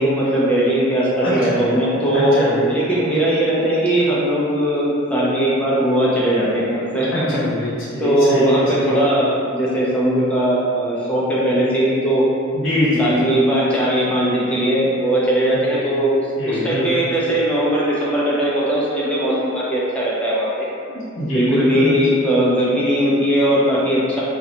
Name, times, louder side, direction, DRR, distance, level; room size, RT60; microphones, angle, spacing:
voice 1, 0.0-7.4 8.0-12.3 13.0-16.2 16.5-20.7 21.3-24.2, right 1 dB, 5° left, -7 dB, 0.4 m, -19 dB
voice 2, 1.2-1.8 2.4-2.7 7.1-9.0 12.5-13.1 15.5-15.7 16.4-17.1 20.9-22.0, left 1 dB, 65° left, -11 dB, 0.8 m, -23 dB
2.4 x 2.1 x 2.7 m, 2.4 s
head